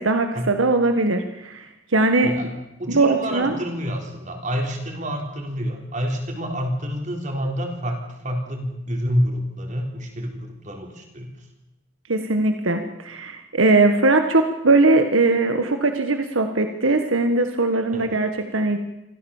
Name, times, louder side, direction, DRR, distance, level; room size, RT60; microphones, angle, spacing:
voice 1, 0.0-1.7 1.9-2.3 2.9-3.5 12.1-18.8, right 2 dB, 85° right, 6 dB, 1.6 m, -20 dB
voice 2, 2.2-11.3 17.9-18.1, equal, 40° right, 2 dB, 4.0 m, -28 dB
25.0 x 16.0 x 7.3 m, 0.94 s
head